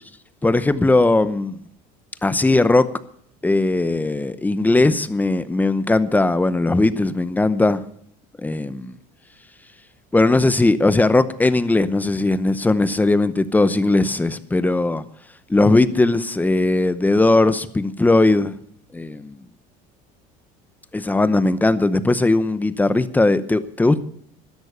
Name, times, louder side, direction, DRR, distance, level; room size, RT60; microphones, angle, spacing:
voice 1, 0.4-1.6 2.2-2.9 3.4-7.8 8.4-8.9 10.1-15.0 15.5-18.5 18.9-19.4 20.9-24.0, left 2 dB, 10° left, 0.7 m, -18 dB
13.0 x 11.0 x 6.8 m
cardioid pair, 130°, 19 cm